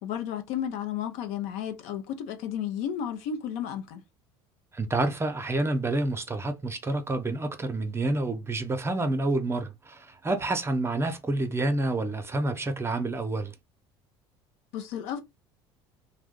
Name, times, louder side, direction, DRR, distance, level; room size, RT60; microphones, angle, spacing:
voice 1, 0.0-4.0 14.7-15.2, left 9 dB, 70° left, 0.6 m, -33 dB
voice 2, 4.7-13.5, right 2 dB, 20° right, 0.7 m, -28 dB
2.6 x 2.2 x 3.6 m
hypercardioid pair, 75°, 13 cm